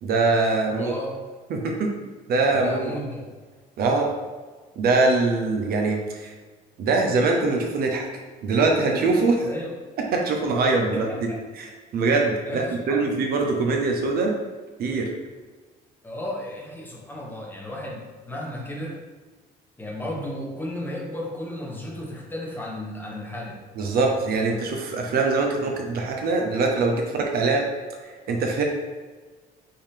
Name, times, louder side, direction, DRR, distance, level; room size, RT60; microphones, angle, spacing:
voice 1, 0.0-0.9 1.5-1.9 2.3-2.9 3.8-4.1 4.8-6.3 6.8-8.1 8.4-9.5 10.1-11.3 11.5-14.3 14.8-15.1 23.8-27.7 28.0-28.6, right 3 dB, 65° right, 1 dB, 0.8 m, -23 dB
voice 2, 0.7-1.2 2.5-3.3 9.4-9.7 10.9-11.4 12.5-13.0 16.0-19.0 19.8-23.6, left 1 dB, 10° left, -2 dB, 1.1 m, -34 dB
5.5 x 2.8 x 3.5 m, 1.4 s
cardioid pair, 110°, 17 cm